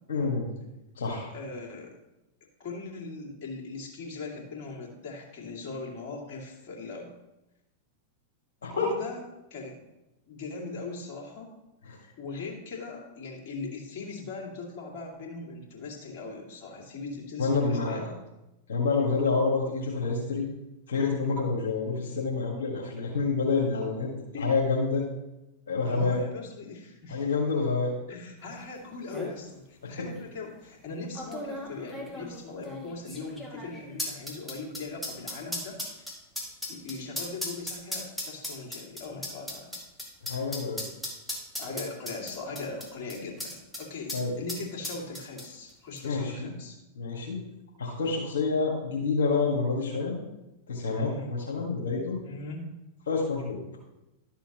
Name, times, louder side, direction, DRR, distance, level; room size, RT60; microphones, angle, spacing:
voice 1, 0.1-0.5 1.0-1.3 8.6-8.9 11.9-12.0 17.4-18.1 18.7-20.5 20.9-24.1 24.4-25.0 25.7-26.2 27.1-27.9 30.0-30.1 40.2-40.8 43.1-43.2 44.1-44.3 46.0-46.5 46.9-47.4 47.8-50.2 50.7-52.2 53.1-53.6, left 4 dB, 75° left, -3 dB, 1.8 m, -28 dB
voice 2, 1.3-1.9 2.6-7.1 8.7-9.2 9.5-9.8 10.3-11.5 12.2-18.1 24.1-24.5 25.8-27.3 28.1-36.1 36.7-39.7 41.6-46.8 50.9-51.3 52.2-52.6, left 3 dB, 55° left, -2 dB, 2.5 m, -39 dB
sound 1, 28.6-28.7 28.9-29.3 30.1-30.2 31.2-43.8 44.1-44.2 44.5-45.7 46.0-46.1, left 1 dB, 5° left, 2.2 m, -37 dB
12.0 x 6.9 x 3.0 m, 0.95 s
hypercardioid pair, 100°, 0 cm